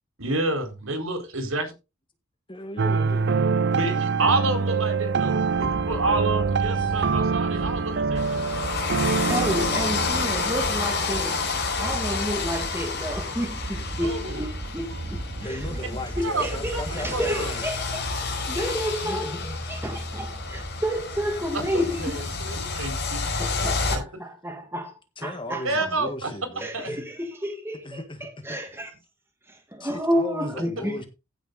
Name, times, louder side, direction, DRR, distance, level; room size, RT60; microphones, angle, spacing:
voice 1, 0.2-1.7 3.7-8.5 14.0-14.4 16.2-16.4 16.7-16.8 17.1-17.5 22.0-23.2 23.6-23.7 25.6-26.3 26.7-26.9, right 2 dB, 75° right, 4.3 m, -29 dB
voice 2, 2.5-3.3 6.7-7.1 7.4-7.6 9.2-9.5 15.4-17.7 19.0-19.5 23.2-23.5 25.2-27.0 27.8-28.6 29.8-31.1, left 1 dB, 25° left, 1.8 m, -37 dB
sound 1, 2.8-11.5, right 5 dB, 55° right, 0.5 m, -25 dB
sound 2, 5.3-19.2, right 1 dB, 35° right, 1.0 m, -36 dB
sound 3, 8.2-24.0, left 4 dB, 55° left, 5.1 m, -30 dB
voice 3, 9.1-11.5 11.8-15.7 16.2-18.0 18.5-19.4 19.7-22.5 23.4-24.9 25.2-25.9 26.6-28.9 29.5-31.0, equal, 10° right, 2.0 m, -30 dB
15.5 x 6.9 x 3.9 m
head